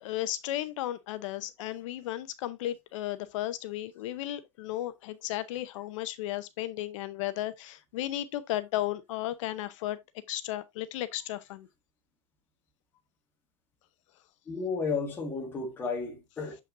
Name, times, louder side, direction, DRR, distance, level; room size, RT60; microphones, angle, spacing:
voice 1, 0.0-10.0 10.3-11.7, left 14 dB, 55° left, 0.6 m, -34 dB
voice 2, 14.5-16.5, left 4 dB, 10° left, 1.6 m, -33 dB
7.3 x 5.6 x 2.5 m
supercardioid pair, 180°, 19 cm